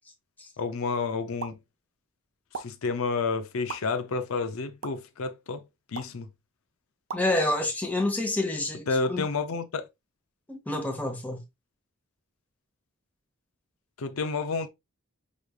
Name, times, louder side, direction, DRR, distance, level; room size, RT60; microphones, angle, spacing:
voice 1, 0.6-1.6 2.6-5.6 5.9-6.3 8.9-9.9 14.0-14.7, left 4 dB, 75° left, 0.5 m, -30 dB
sound 1, 1.4-1.6 2.5-2.6 3.7-3.8 4.8-4.9 6.0-6.2 7.1-7.2, right 4 dB, 75° right, 0.7 m, -36 dB
voice 2, 7.1-9.3 10.5-11.4, left 2 dB, 10° left, 0.9 m, -28 dB
5.0 x 3.2 x 2.3 m
head